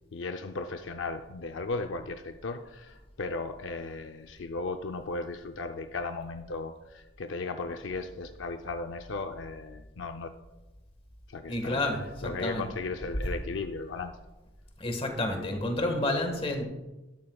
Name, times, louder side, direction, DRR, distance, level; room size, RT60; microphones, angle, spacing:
voice 1, 0.1-10.3 11.3-11.8 12.2-14.2, left 3 dB, 70° left, 6 dB, 0.5 m, -36 dB
voice 2, 11.5-12.7 14.8-16.6, left 1 dB, 30° left, 4 dB, 1.6 m, -30 dB
12.5 x 12.0 x 2.3 m, 1.1 s
head